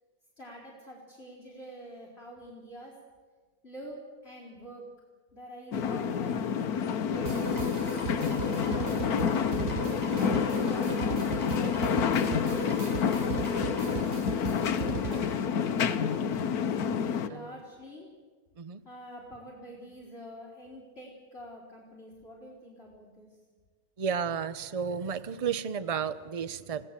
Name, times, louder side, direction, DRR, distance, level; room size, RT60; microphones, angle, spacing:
voice 1, 0.4-3.0 3.6-4.9 5.3-8.0 8.4-9.6 10.1-13.0 14.5-16.6 17.0-18.1 18.8-23.4, equal, 40° left, -4 dB, 4.5 m, -47 dB
sound 1, 5.7-17.3, left 7 dB, 80° left, 1.5 m, -28 dB
sound 2, 7.1-14.0, right 1 dB, 10° right, 4.8 m, -38 dB
sound 3, 7.3-15.4, right 8 dB, 50° right, 1.1 m, -39 dB
voice 2, 24.0-26.8, right 7 dB, 30° right, 13 dB, 0.7 m, -33 dB
30.0 x 17.5 x 7.5 m, 1.5 s
omnidirectional pair, 1.6 m